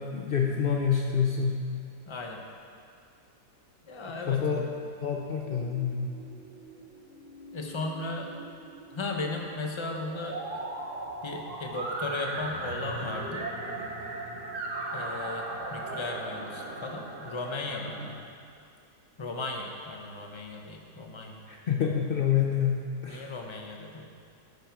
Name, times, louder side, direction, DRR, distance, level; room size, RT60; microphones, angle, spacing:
voice 1, 0.0-1.7 4.1-4.6 5.0-6.1 21.5-23.3, left 7 dB, 70° left, 0 dB, 0.5 m, -27 dB
voice 2, 2.1-2.4 3.9-4.4 7.5-8.3 8.9-10.6 11.2-13.5 14.9-15.4 15.7-17.9 19.2-21.4 23.0-24.1, left 2 dB, 25° left, 2 dB, 0.6 m, -36 dB
sound 1, 5.4-18.1, right 2 dB, 45° right, 1.5 m, -38 dB
10.0 x 9.8 x 4.6 m, 2.4 s
omnidirectional pair, 1.9 m